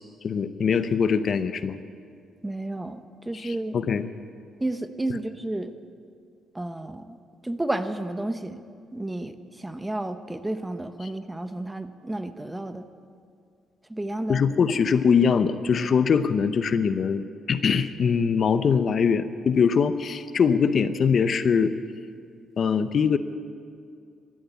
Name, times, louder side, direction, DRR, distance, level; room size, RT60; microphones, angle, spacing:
voice 1, 0.2-1.8 3.4-4.1 14.3-21.7 22.6-23.2, left 6 dB, 50° left, 12 dB, 0.6 m, -22 dB
voice 2, 2.4-3.8 4.6-5.7 6.5-8.6 8.9-12.9 13.9-14.4, right 1 dB, 10° right, 10 dB, 0.8 m, -32 dB
14.5 x 11.0 x 8.3 m, 2.3 s
cardioid pair, 90°, 0 cm